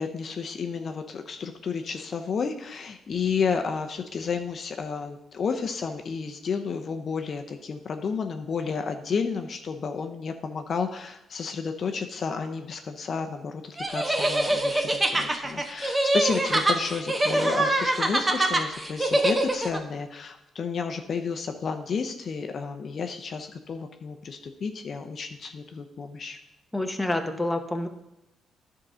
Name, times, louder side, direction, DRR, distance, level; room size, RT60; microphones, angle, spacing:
voice 1, 0.0-26.4, left 5 dB, 50° left, 6 dB, 0.7 m, -31 dB
sound 1, 13.8-19.8, right 1 dB, 15° right, 1.0 m, -24 dB
voice 2, 26.7-27.9, left 1 dB, 5° left, 5 dB, 0.9 m, -27 dB
10.5 x 3.8 x 6.2 m, 0.90 s
cardioid pair, 90°, 0 cm